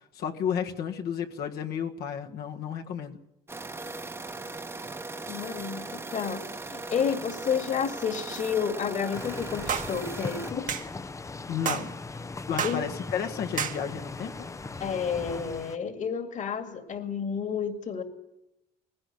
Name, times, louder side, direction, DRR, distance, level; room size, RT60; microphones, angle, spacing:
voice 1, 0.2-3.2 11.5-11.9 12.5-14.5, left 8 dB, 70° left, 3 dB, 1.7 m, -32 dB
sound 1, 3.5-10.5, right 3 dB, 15° right, 1.1 m, -39 dB
voice 2, 5.3-10.7 12.6-12.9 14.8-18.0, left 7 dB, 45° left, 8 dB, 2.4 m, -31 dB
sound 2, 9.1-15.8, left 3 dB, 20° left, 0.7 m, -39 dB
sound 3, 9.7-9.9 10.7-10.9 11.7-11.9 12.6-12.8 13.6-13.8, right 8 dB, 50° right, 1.4 m, -29 dB
19.5 x 16.5 x 9.4 m, 0.88 s
cardioid pair, 110°, 17 cm